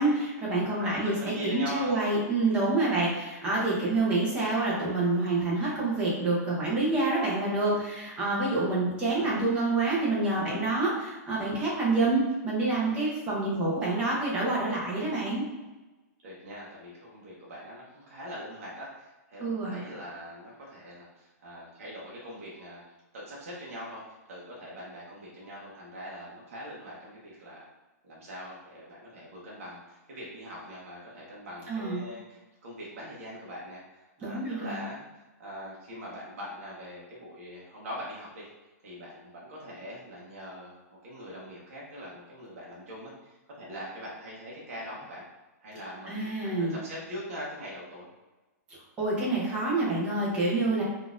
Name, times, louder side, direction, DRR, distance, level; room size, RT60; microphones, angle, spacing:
voice 1, 0.0-15.4 19.4-19.8 31.7-32.0 34.2-34.8 46.1-46.8 49.0-50.8, right 2 dB, 15° right, -5 dB, 0.6 m, -27 dB
voice 2, 0.8-1.9 9.1-9.5 16.2-22.8 23.1-27.7 28.0-35.0 35.4-38.5 38.8-45.2 45.6-48.1, equal, 55° right, -5 dB, 0.8 m, -42 dB
3.8 x 2.4 x 2.4 m, 1.1 s
hypercardioid pair, 175°, 9 cm